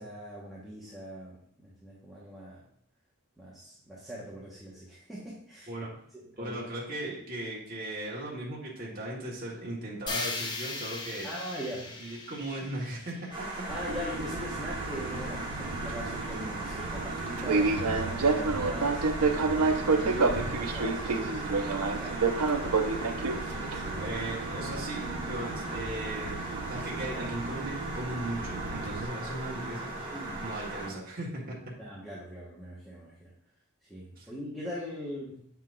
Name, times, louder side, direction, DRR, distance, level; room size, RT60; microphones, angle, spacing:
voice 1, 0.0-2.6 3.4-5.7 6.1-6.6 11.2-11.9 13.7-19.0 19.5-22.2 23.2-24.2 30.1-30.4 31.8-33.3 33.9-35.5, equal, ahead, -8 dB, 1.3 m, -41 dB
voice 2, 6.4-11.3 12.0-13.5 24.0-30.1 30.4-31.7 34.2-34.3, right 1 dB, 40° right, -4 dB, 1.3 m, -37 dB
sound 1, 10.1-14.1, left 3 dB, 20° left, 0.7 m, -38 dB
sound 2, 13.3-30.9, right 2 dB, 20° right, 1.3 m, -38 dB
Fixed-wing aircraft airplane, 13.7-29.1, right 3 dB, 85° right, 0.6 m, -31 dB
7.4 x 5.7 x 2.5 m, 0.66 s
head